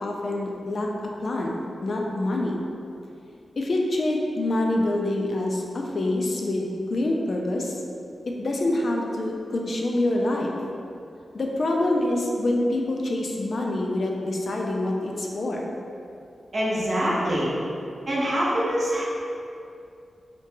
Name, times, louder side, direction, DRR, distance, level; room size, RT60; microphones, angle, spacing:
voice 1, 0.0-2.6 3.6-7.7 8.3-10.5 11.3-15.7, left 1 dB, 60° left, 0 dB, 0.3 m, -26 dB
voice 2, 16.5-17.5 18.1-19.0, equal, 55° right, -7 dB, 0.7 m, -24 dB
2.6 x 2.2 x 2.7 m, 2.5 s
cardioid pair, 60°, 0 cm